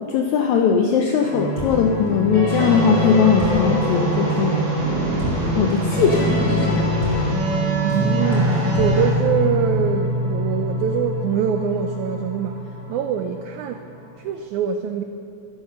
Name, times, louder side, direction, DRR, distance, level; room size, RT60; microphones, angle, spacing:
voice 1, 0.0-4.6 5.6-6.9, left 6 dB, 80° left, 4 dB, 1.6 m, -19 dB
sound 1, 1.2-13.8, left 1 dB, 45° left, 4.1 m, -25 dB
sound 2, 2.6-9.1, right 3 dB, 40° right, 2.3 m, -24 dB
voice 2, 7.8-12.6 12.9-13.8 14.2-15.0, right 8 dB, 85° right, 7 dB, 1.7 m, -24 dB
13.0 x 12.5 x 6.6 m, 2.7 s
omnidirectional pair, 4.1 m